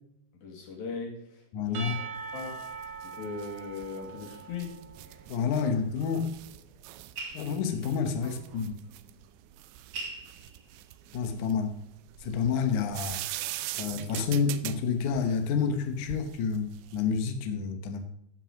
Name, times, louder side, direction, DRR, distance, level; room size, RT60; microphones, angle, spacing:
voice 1, 0.3-2.1 2.3-2.7 3.0-4.9 8.2-8.4, left 4 dB, 55° left, 1 dB, 4.0 m, -39 dB
voice 2, 1.5-2.0 5.3-6.3 7.3-8.7 11.1-11.7 12.2-13.2 13.7-18.0, left 6 dB, 80° left, 7 dB, 1.7 m, -29 dB
Percussion / Church bell, 1.7-5.4, right 5 dB, 65° right, 2.0 m, -41 dB
sound 1, 2.2-17.2, right 15 dB, 80° right, 2.8 m, -43 dB
sound 2, 4.0-11.8, right 3 dB, 45° right, 4.0 m, -47 dB
15.5 x 5.9 x 5.2 m, 0.76 s
omnidirectional pair, 5.3 m